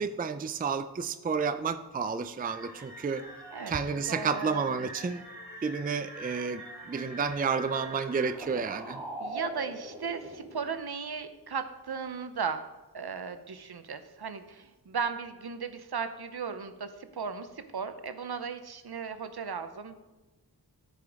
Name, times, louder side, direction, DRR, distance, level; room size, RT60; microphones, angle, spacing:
voice 1, 0.0-3.3 3.7-5.2 5.6-9.0, right 5 dB, 25° right, 11 dB, 0.4 m, -31 dB
sound 1, 2.4-10.7, right 1 dB, 5° right, 3.3 m, -43 dB
voice 2, 3.5-4.9 9.2-12.7 12.9-20.0, right 5 dB, 65° right, 10 dB, 0.7 m, -36 dB
14.0 x 5.0 x 3.5 m, 1.1 s
wide cardioid pair, 60°, 41 cm